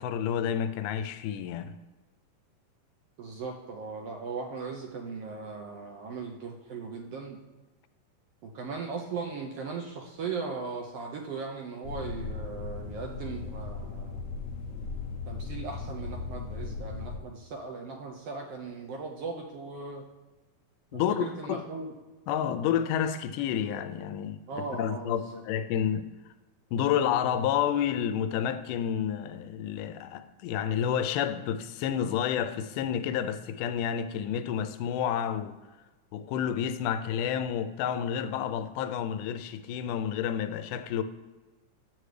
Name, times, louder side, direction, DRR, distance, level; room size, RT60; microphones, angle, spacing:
voice 1, 0.0-1.8 20.9-21.6 22.3-24.4 24.8-26.1 26.7-35.6 36.1-41.0, left 9 dB, 85° left, 2.1 m, -30 dB
voice 2, 3.2-7.4 8.4-14.2 15.3-20.0 20.9-21.9 24.5-25.4, right 4 dB, 80° right, 1.3 m, -38 dB
sound 1, 11.8-17.2, left 4 dB, 70° left, 1.7 m, -37 dB
11.0 x 7.9 x 3.3 m
omnidirectional pair, 3.6 m